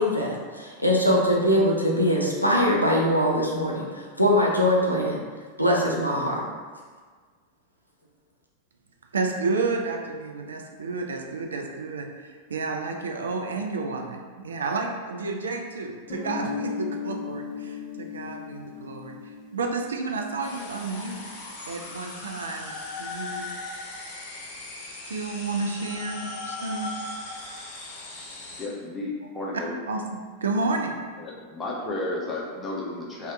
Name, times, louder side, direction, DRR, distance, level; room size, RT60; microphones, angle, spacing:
voice 1, 0.0-5.2 5.6-6.4, equal, 90° left, -3 dB, 0.4 m, -22 dB
voice 2, 9.1-19.2 19.5-21.2 21.7-23.5 25.1-26.9 29.9-30.9, right 3 dB, 70° right, 3 dB, 0.3 m, -31 dB
Guitar, 16.1-20.7, left 4 dB, 55° left, 0.8 m, -36 dB
sound 1, 20.4-28.6, left 2 dB, 35° left, 1.2 m, -38 dB
voice 3, 28.6-29.8 31.2-33.3, left 2 dB, 15° left, -4 dB, 0.7 m, -32 dB
2.7 x 2.1 x 3.5 m, 1.5 s
figure-of-eight pair, 90°, 0 cm